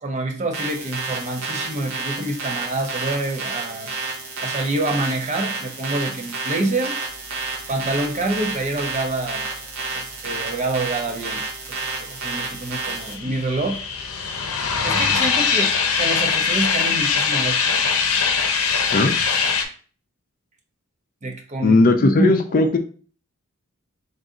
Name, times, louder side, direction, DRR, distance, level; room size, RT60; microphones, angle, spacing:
voice 1, 0.0-3.9 4.4-7.0 7.7-9.4 9.9-11.4 11.8-13.8 14.8-17.7 21.2-22.7, right 2 dB, 35° right, 4 dB, 0.6 m, -26 dB
sound 1, 0.5-13.1, right 3 dB, 80° right, 1.2 m, -30 dB
sound 2, 12.5-19.6, left 5 dB, 80° left, 0.6 m, -22 dB
voice 2, 21.6-22.8, left 2 dB, 40° left, 7 dB, 0.4 m, -16 dB
3.9 x 2.6 x 3.6 m, 0.41 s
head